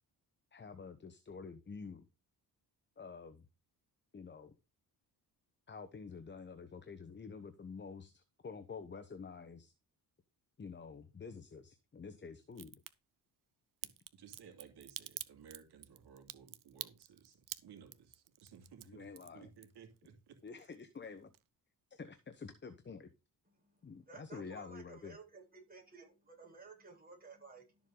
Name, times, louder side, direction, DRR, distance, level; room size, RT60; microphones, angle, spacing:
voice 1, 0.5-2.0 3.0-3.5 4.1-4.5 5.7-9.7 10.6-12.8 18.9-19.5 20.4-21.3 21.9-23.1 23.8-25.2, left 5 dB, 30° left, 1.0 m, -49 dB
Crack, 12.5-12.9 13.8-20.1 20.4-21.0 21.3-21.4, right 11 dB, 55° right, 0.8 m, -47 dB
voice 2, 13.8-19.1 19.3-20.4, right 7 dB, 85° right, 2.5 m, -58 dB
voice 3, 23.4-27.8, right 4 dB, 25° right, 8.0 m, -55 dB
12.5 x 7.3 x 3.9 m
cardioid pair, 115°, 39 cm